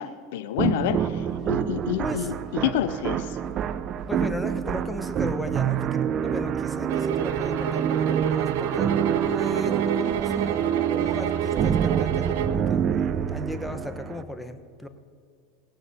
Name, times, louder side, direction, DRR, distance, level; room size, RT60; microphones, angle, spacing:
voice 1, 0.0-2.3 2.6-3.4, left 12 dB, 65° left, 13 dB, 0.5 m, -28 dB
sound 1, 0.6-14.2, right 8 dB, 40° right, 0.5 m, -26 dB
voice 2, 2.0-2.3 4.1-8.9 9.2-14.9, equal, 5° left, 8 dB, 1.0 m, -36 dB
sound 2, 6.9-12.6, right 8 dB, 70° right, 0.8 m, -30 dB
18.5 x 16.5 x 2.8 m, 2.4 s
hypercardioid pair, 85°, 0 cm